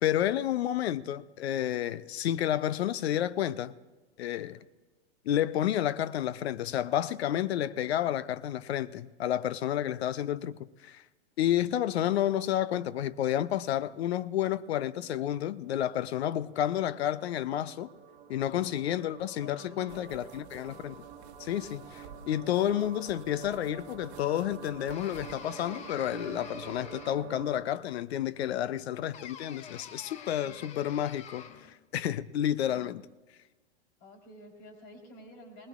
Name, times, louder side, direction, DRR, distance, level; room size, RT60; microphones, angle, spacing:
voice 1, 0.0-3.7 4.2-4.6 5.3-11.0 11.4-17.9 18.3-21.0 21.4-33.0, left 11 dB, 65° left, 0.6 m, -30 dB
sound 1, 12.4-12.9 13.2-13.3 13.5-27.6, right 7 dB, 25° right, 1.4 m, -49 dB
voice 2, 19.3-20.5 34.0-35.7, equal, 45° left, 3.9 m, -51 dB
sound 2, 19.9-26.4, right 7 dB, 70° right, 1.1 m, -54 dB
sound 3, 24.9-27.5 29.1-31.8, left 7 dB, 20° left, 0.6 m, -47 dB
19.5 x 19.5 x 2.4 m
hypercardioid pair, 120°, 34 cm